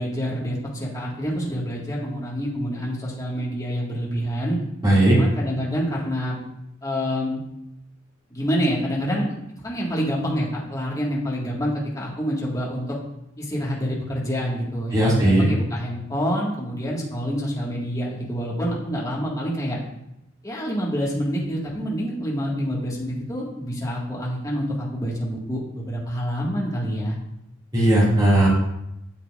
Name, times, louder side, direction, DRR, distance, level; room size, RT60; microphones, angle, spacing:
voice 1, 0.0-4.6 5.1-6.4 6.8-7.4 8.3-9.3 9.6-13.0 13.4-19.8 20.4-27.2, equal, 15° left, -6 dB, 1.8 m, -27 dB
voice 2, 4.8-5.2 14.9-15.5 27.7-28.5, right 1 dB, 20° right, -6 dB, 2.3 m, -17 dB
8.8 x 7.4 x 2.5 m, 0.83 s
head